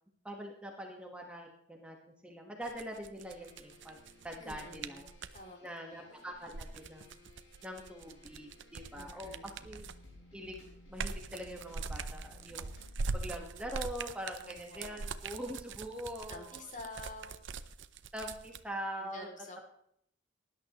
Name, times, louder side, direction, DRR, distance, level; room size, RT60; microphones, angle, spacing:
voice 1, 0.2-4.0 4.2-5.1 5.6-7.2 7.6-9.9 10.3-10.6 10.9-12.7 13.1-16.6 18.1-19.3, equal, 5° right, 1 dB, 1.4 m, -43 dB
sound 1, 2.6-5.4 6.3-10.1 10.5-18.6, right 4 dB, 70° right, 0.7 m, -42 dB
sound 2, 3.2-13.0, left 2 dB, 70° left, 6.0 m, -57 dB
voice 2, 4.4-5.0 5.3-6.2 8.9-9.7 14.4-15.0 16.3-17.5 19.0-19.6, left 1 dB, 40° left, 3 dB, 2.8 m, -49 dB
19.0 x 11.0 x 3.0 m, 0.69 s
head